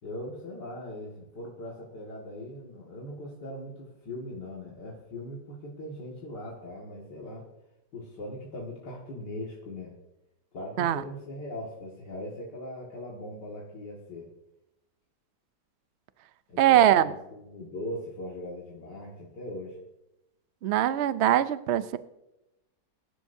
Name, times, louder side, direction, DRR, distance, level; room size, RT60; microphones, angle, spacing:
voice 1, 0.0-7.5 7.9-9.9 10.5-14.3 16.5-19.8, left 1 dB, 80° left, -4 dB, 2.6 m, -40 dB
voice 2, 16.6-17.1 20.6-22.0, right 11 dB, 65° right, 13 dB, 0.6 m, -22 dB
24.5 x 12.0 x 2.7 m, 0.93 s
omnidirectional pair, 1.8 m